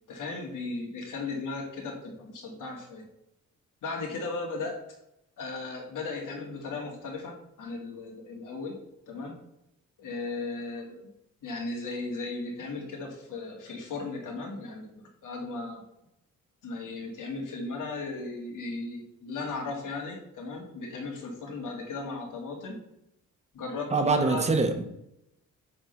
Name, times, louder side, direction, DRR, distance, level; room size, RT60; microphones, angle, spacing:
voice 1, 0.1-3.1 3.8-4.8 5.4-8.8 9.1-9.4 10.0-11.1 11.4-15.0 15.2-15.8 16.6-22.8 23.5-24.5, left 3 dB, 85° left, 2.1 m, -36 dB
voice 2, 23.9-24.8, right 3 dB, 20° right, 0.8 m, -24 dB
8.7 x 3.7 x 5.7 m
wide cardioid pair, 180°, 31 cm